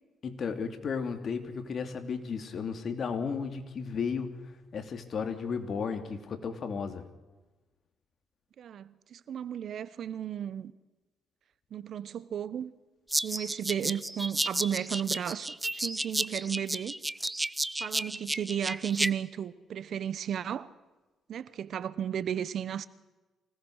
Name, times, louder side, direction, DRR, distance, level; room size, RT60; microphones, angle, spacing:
voice 1, 0.2-4.3 4.7-7.0, left 5 dB, 50° left, 2.8 m, -34 dB
voice 2, 8.6-10.7 11.7-12.7 13.2-16.9 17.8-20.7 21.3-22.9, right 9 dB, 65° right, 1.0 m, -34 dB
sound 1, 13.1-19.1, right 1 dB, 10° right, 0.8 m, -32 dB
25.0 x 18.5 x 6.5 m
cardioid pair, 90°, 0 cm